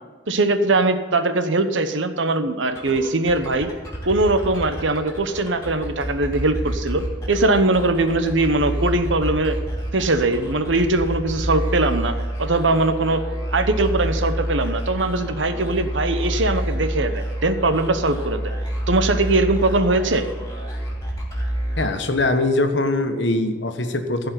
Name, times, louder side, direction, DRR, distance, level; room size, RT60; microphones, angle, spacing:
voice 1, 0.3-3.7 4.0-9.6 9.9-13.2 13.5-18.5 18.9-20.3, right 2 dB, 85° right, 9 dB, 1.1 m, -21 dB
sound 1, 2.8-22.4, right 1 dB, 15° left, 2.8 m, -28 dB
voice 2, 21.8-24.3, left 2 dB, 75° left, 7 dB, 1.3 m, -22 dB
15.5 x 5.4 x 9.4 m, 1.5 s
head